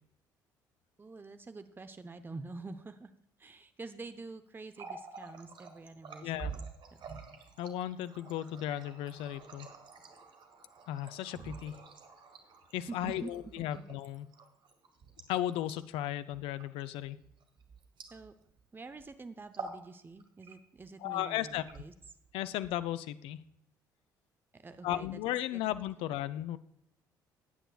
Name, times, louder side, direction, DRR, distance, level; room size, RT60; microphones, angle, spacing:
voice 1, 1.0-3.1 3.4-6.7 12.9-13.8 18.1-18.3 18.7-21.9 24.5-25.2 25.5-25.6, right 3 dB, 20° right, 10 dB, 0.7 m, -46 dB
Water tap faucet, 4.6-18.6 18.9-19.1 19.4-19.9 20.2-20.9 21.5-22.3, right 5 dB, 50° right, 1.8 m, -48 dB
voice 2, 6.2-6.5 7.6-9.7 10.9-11.8 12.7-14.3 15.3-17.2 21.0-21.6 22.3-23.4 24.8-26.6, left 13 dB, 60° left, 15 dB, 0.6 m, -35 dB
18.0 x 8.9 x 2.4 m, 0.76 s
figure-of-eight pair, 50°, 11 cm